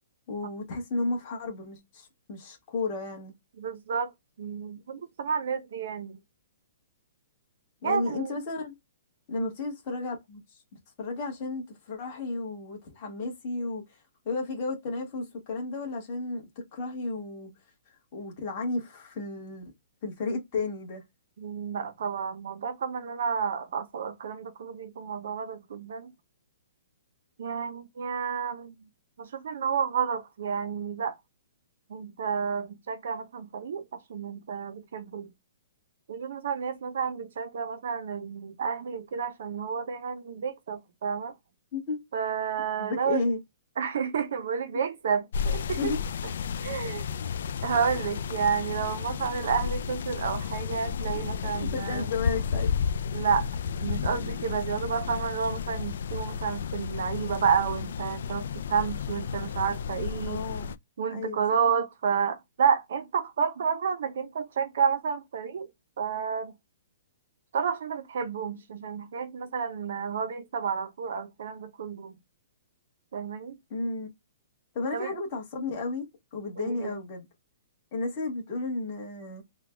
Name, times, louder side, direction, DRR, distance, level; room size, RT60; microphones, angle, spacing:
voice 1, 0.3-3.3 7.8-8.7 9.3-10.4 10.7-13.8 14.2-16.4 16.7-17.5 18.1-19.7 20.0-21.0 41.7-42.0 42.8-43.4 45.8-46.0 51.6-52.7 60.2-60.7 61.1-61.4 73.7-74.1 74.7-76.0 76.3-77.3 77.9-79.4, left 3 dB, 25° left, 1.5 m, -33 dB
voice 2, 3.6-4.1 4.4-6.2 7.8-8.4 9.3-9.5 21.4-26.1 27.4-28.9 29.2-31.2 31.9-35.3 36.1-41.4 42.1-43.2 43.8-45.9 46.6-47.1 47.6-52.1 53.1-53.5 53.8-60.4 61.0-65.7 66.0-66.5 67.5-72.1 73.1-73.6 74.9-75.1 76.6-77.0, right 6 dB, 50° right, 0.6 m, -30 dB
sound 1, 45.3-60.8, left 6 dB, 55° left, 0.3 m, -32 dB
3.8 x 2.2 x 3.3 m
hypercardioid pair, 180°, 0 cm